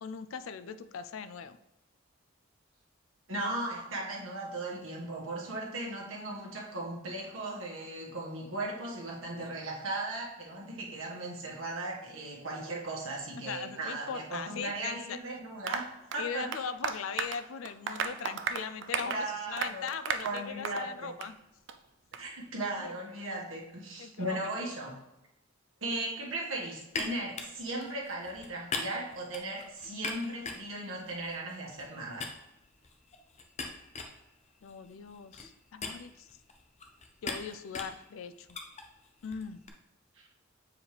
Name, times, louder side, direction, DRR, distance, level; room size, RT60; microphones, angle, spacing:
voice 1, 0.0-1.6 13.4-15.2 16.2-21.4 22.8-22.9 24.0-24.5 34.6-36.3 37.2-38.5 39.2-39.6, left 6 dB, 80° left, 12 dB, 0.4 m, -40 dB
voice 2, 3.3-15.8 16.1-16.5 19.0-19.9 20.2-21.2 22.1-25.0 25.8-32.3 40.1-40.3, right 2 dB, 85° right, -2 dB, 1.6 m, -37 dB
Applause, 15.7-20.9 21.2-21.3 21.7-21.8 22.1-22.2, right 6 dB, 65° right, 0.4 m, -35 dB
sound 1, 26.9-31.9 32.2-39.7, left 4 dB, 35° left, 0.7 m, -42 dB
7.4 x 4.7 x 3.3 m, 0.92 s
head